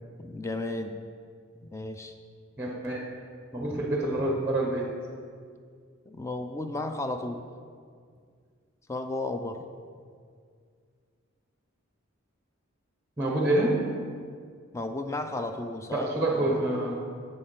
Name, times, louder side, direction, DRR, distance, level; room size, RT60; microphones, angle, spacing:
voice 1, 0.2-1.0 1.6-2.1 6.1-7.5 8.9-9.7 14.7-16.6, left 2 dB, 15° left, 7 dB, 0.3 m, -34 dB
voice 2, 2.6-3.0 3.5-4.9 13.2-13.9 15.9-17.0, right 1 dB, 10° right, 0 dB, 0.7 m, -27 dB
7.7 x 6.4 x 3.8 m, 2.1 s
head